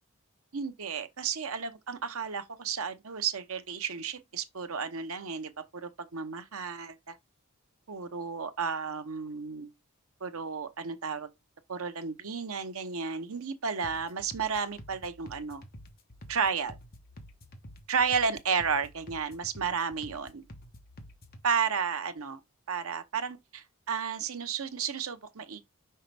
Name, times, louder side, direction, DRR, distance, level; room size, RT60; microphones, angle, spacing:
voice 1, 0.5-7.1 7.9-9.7 10.2-11.3 11.7-15.6 16.3-16.8 17.9-20.4 21.4-22.4 22.7-25.6, right 6 dB, 75° right, 0.8 m, -32 dB
sound 1, 13.8-21.4, equal, 40° left, 1.2 m, -50 dB
5.6 x 5.0 x 3.3 m
head